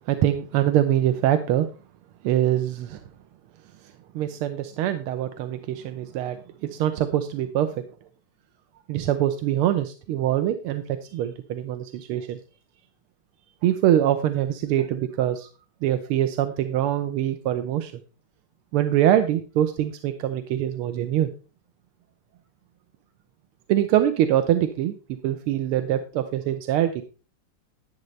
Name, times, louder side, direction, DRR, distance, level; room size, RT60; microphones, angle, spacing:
voice 1, 0.1-1.7 2.2-3.0 4.1-7.7 8.9-12.4 13.6-15.5 15.8-17.9 18.7-21.3 23.7-24.9 25.2-27.0, right 11 dB, 90° right, 9 dB, 1.6 m, -24 dB
11.0 x 10.5 x 3.2 m, 0.35 s
omnidirectional pair, 2.3 m